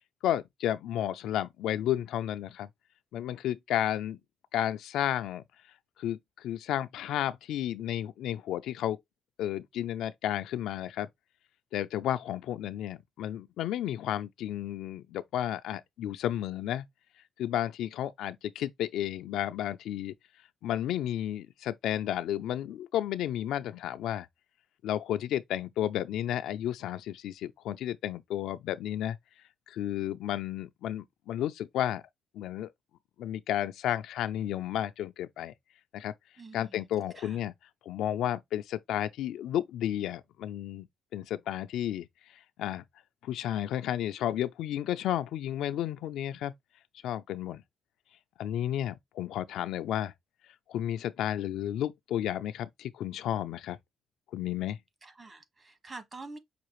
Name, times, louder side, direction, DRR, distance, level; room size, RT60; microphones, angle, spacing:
voice 1, 0.2-2.7 3.1-4.2 4.5-5.4 6.0-9.0 9.4-11.1 11.7-16.9 17.4-20.1 20.6-24.3 24.8-29.2 29.7-32.0 32.3-32.7 33.2-35.5 35.9-36.1 36.5-37.5 37.9-40.9 41.1-42.1 42.6-42.8 43.2-46.5 47.0-47.6 48.4-50.1 50.7-53.8 54.3-54.8, left 11 dB, 85° left, 0.4 m, -32 dB
voice 2, 36.4-36.8 37.1-37.4 55.0-56.4, right 3 dB, 30° right, 1.3 m, -46 dB
5.8 x 2.5 x 3.0 m
cardioid pair, 90°, 0 cm